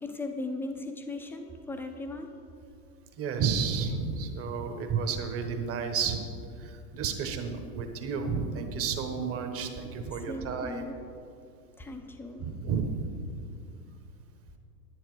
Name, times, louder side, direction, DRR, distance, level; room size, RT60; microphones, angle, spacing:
voice 1, 0.0-2.3 10.3-11.0 11.8-12.5, left 2 dB, 5° left, 5 dB, 0.6 m, -37 dB
voice 2, 3.2-6.2 6.6-10.8 12.4-13.1, right 6 dB, 30° right, 6 dB, 1.2 m, -31 dB
10.0 x 10.0 x 4.8 m, 2.4 s
hypercardioid pair, 120°, 49 cm